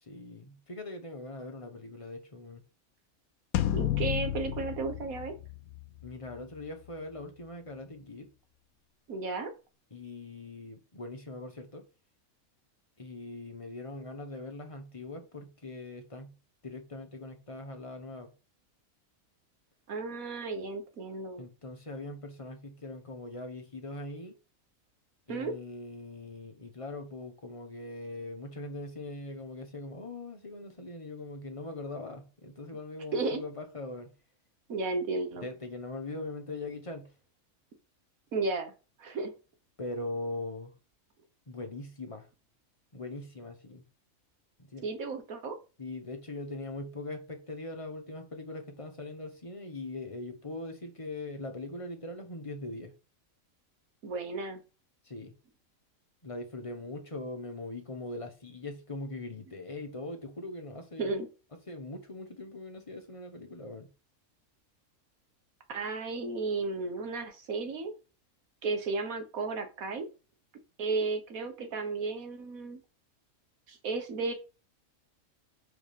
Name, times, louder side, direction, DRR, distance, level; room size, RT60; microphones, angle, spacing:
voice 1, 0.0-2.6 6.0-8.3 9.9-11.8 13.0-16.3 16.6-18.3 21.4-24.3 25.3-34.1 35.4-37.1 39.8-40.7 41.5-42.3 42.9-43.8 44.6-44.9 45.8-52.9 55.0-55.3 56.2-61.1 61.7-63.9, left 2 dB, 25° left, 1.1 m, -41 dB
sound 1, 3.5-6.1, left 12 dB, 80° left, 1.0 m, -31 dB
voice 2, 3.7-5.3 9.1-9.5 19.9-21.4 25.3-25.5 33.1-33.4 34.7-35.4 38.3-38.7 39.0-39.3 44.8-45.6 54.0-54.6 61.0-61.3 65.7-67.9 68.6-70.1 70.8-72.8 73.7-74.3, right 3 dB, 75° right, 1.7 m, -33 dB
5.0 x 5.0 x 5.2 m
omnidirectional pair, 1.5 m